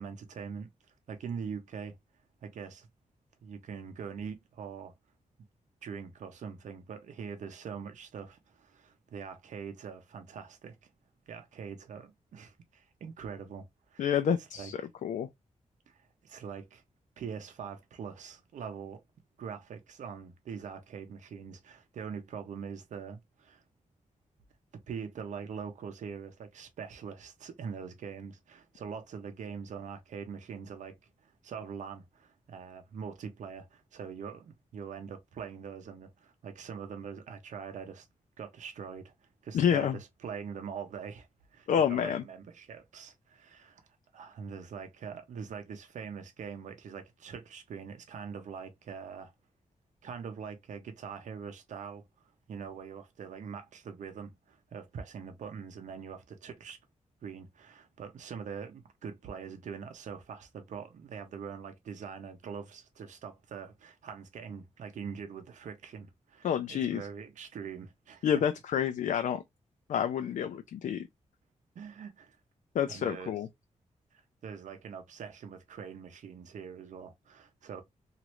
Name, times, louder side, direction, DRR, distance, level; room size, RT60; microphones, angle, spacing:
voice 1, 0.0-2.0 2.4-2.9 3.4-4.9 5.8-10.9 11.3-14.7 15.9-16.8 17.2-19.0 19.4-23.6 24.9-38.1 38.4-43.8 44.1-49.3 50.0-56.8 57.2-68.3 71.8-72.4 72.9-73.4 74.1-77.8, right 6 dB, 75° right, 0.6 m, -43 dB
voice 2, 14.0-15.3 39.5-40.0 41.7-42.2 66.4-67.0 68.2-69.4 69.9-71.1 72.7-73.5, left 8 dB, 75° left, 0.4 m, -28 dB
3.0 x 2.5 x 2.9 m
wide cardioid pair, 180°, 13 cm